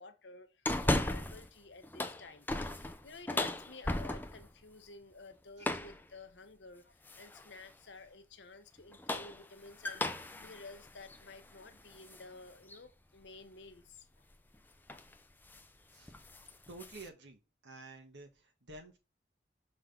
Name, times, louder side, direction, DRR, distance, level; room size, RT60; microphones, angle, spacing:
voice 1, 0.0-2.5 2.7-14.1, left 3 dB, 90° left, 1.0 m, -53 dB
sound 1, 0.7-1.5 1.8-4.5 5.6-6.0 7.1-7.5 8.8-12.2 12.7-12.8 14.3-14.6 14.9-15.1 15.5-15.7 16.0-17.1, left 1 dB, 10° left, 0.6 m, -36 dB
voice 2, 16.7-19.0, right 2 dB, 90° right, 2.1 m, -51 dB
6.4 x 3.8 x 6.0 m
head